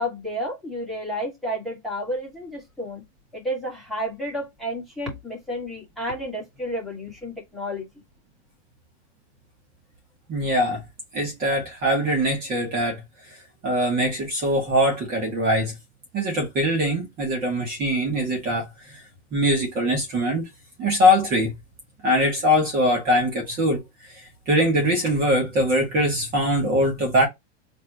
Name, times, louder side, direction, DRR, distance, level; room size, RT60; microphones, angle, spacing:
voice 1, 0.0-3.0 3.3-7.9, equal, ahead, 2.2 m, -31 dB
voice 2, 10.3-10.8 11.1-13.0 13.6-15.7 16.1-19.0 19.3-20.4 20.8-21.5 22.0-23.8 24.1-24.2 24.5-27.3, equal, 25° right, 1.9 m, -22 dB
4.0 x 3.4 x 2.9 m
supercardioid pair, 160°, 35 cm